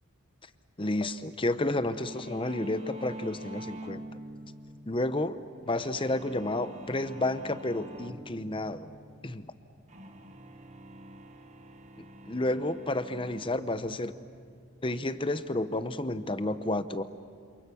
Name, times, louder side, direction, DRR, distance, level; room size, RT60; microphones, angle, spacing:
voice 1, 0.8-4.0 4.9-5.4 5.7-8.9 9.2-9.5 12.3-14.1 14.8-17.0, left 2 dB, 25° left, 12 dB, 0.8 m, -31 dB
sound 1, 1.9-16.4, right 1 dB, 30° right, 1.5 m, -47 dB
28.0 x 28.0 x 7.0 m, 2.3 s
head